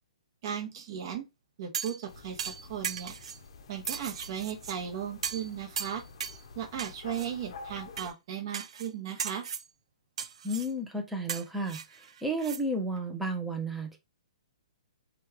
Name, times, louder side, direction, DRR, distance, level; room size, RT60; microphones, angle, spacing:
voice 1, 0.4-1.2 1.6-3.2 3.7-6.0 6.6-9.5, right 9 dB, 40° right, 0.8 m, -36 dB
sound 1, 1.7-2.0 2.4-3.4 3.9-4.8 5.2-5.5 5.8-6.4 6.8-7.3 8.0-8.1 8.5-8.9 9.2-9.7 10.2-10.7 11.3-12.6 13.0-13.1, right 7 dB, 65° right, 0.4 m, -37 dB
sound 2, 2.1-8.1, left 4 dB, 55° left, 0.6 m, -49 dB
voice 2, 10.4-14.0, right 1 dB, 5° right, 0.5 m, -33 dB
3.0 x 2.3 x 3.4 m
hypercardioid pair, 160°, 3 cm